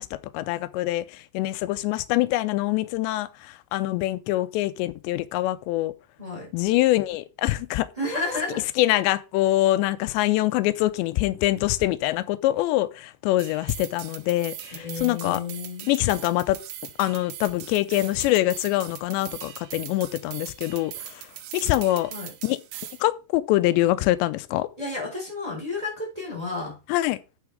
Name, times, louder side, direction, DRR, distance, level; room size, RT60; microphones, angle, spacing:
voice 1, 0.0-5.9 6.5-7.9 8.8-15.4 15.9-16.6 17.0-21.3 21.5-22.1 22.4-22.6 23.0-24.7 26.9-27.2, left 16 dB, 90° left, 2.9 m, -24 dB
voice 2, 6.2-6.5 8.0-8.6 14.7-15.9 22.1-22.3 24.8-26.8, left 3 dB, 10° right, 3.8 m, -31 dB
sound 1, 13.4-23.0, right 12 dB, 90° right, 3.3 m, -41 dB
8.5 x 7.1 x 4.7 m
omnidirectional pair, 5.0 m